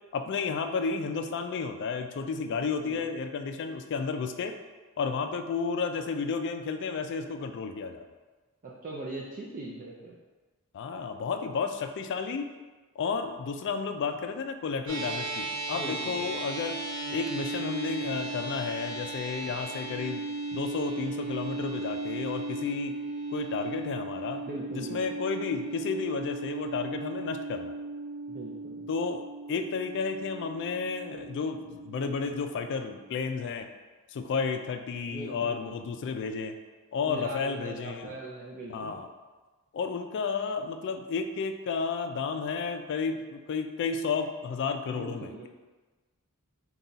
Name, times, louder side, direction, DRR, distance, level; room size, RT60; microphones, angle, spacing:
voice 1, 0.1-4.5 5.0-8.0 10.7-12.5 13.0-16.8 17.1-20.2 20.5-22.9 23.3-24.5 24.7-27.8 28.9-29.2 29.5-33.7 34.1-36.5 36.9-38.1 38.7-39.1 39.7-45.5, left 5 dB, 55° left, 7 dB, 0.3 m, -32 dB
voice 2, 2.5-3.0 8.6-10.1 15.7-16.2 19.4-19.5 24.4-25.0 28.3-28.8 35.1-36.0 37.0-39.0 44.9-45.5, right 2 dB, 40° right, -5 dB, 0.4 m, -41 dB
sound 1, 14.9-33.4, right 2 dB, 80° right, 1.0 m, -37 dB
3.9 x 2.3 x 3.9 m, 1.3 s
head